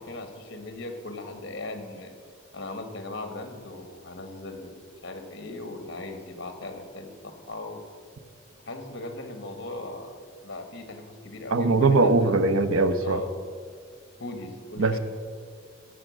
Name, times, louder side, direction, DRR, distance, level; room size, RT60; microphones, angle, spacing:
voice 1, 0.0-2.1 2.5-7.8 8.6-10.2 10.4-12.3 13.0-13.3 14.2-15.0, left 2 dB, 55° left, 7 dB, 1.4 m, -38 dB
voice 2, 11.5-13.2 14.8-15.0, right 3 dB, 85° right, 10 dB, 0.7 m, -21 dB
15.5 x 6.5 x 6.2 m, 2.1 s
head